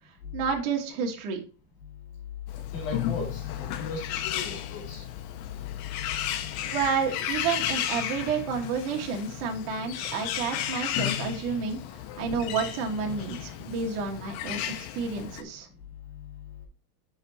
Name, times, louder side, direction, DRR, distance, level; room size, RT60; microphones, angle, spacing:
voice 1, 0.3-1.4 6.7-11.8 12.2-15.7, right 5 dB, 70° right, 1 dB, 1.9 m, -30 dB
Bird, 2.5-15.4, left 11 dB, 85° left, 3.4 m, -34 dB
voice 2, 2.7-5.1 6.0-6.8 12.3-12.4, left 5 dB, 50° left, -1 dB, 3.9 m, -36 dB
7.9 x 5.7 x 4.2 m, 0.36 s
omnidirectional pair, 6.0 m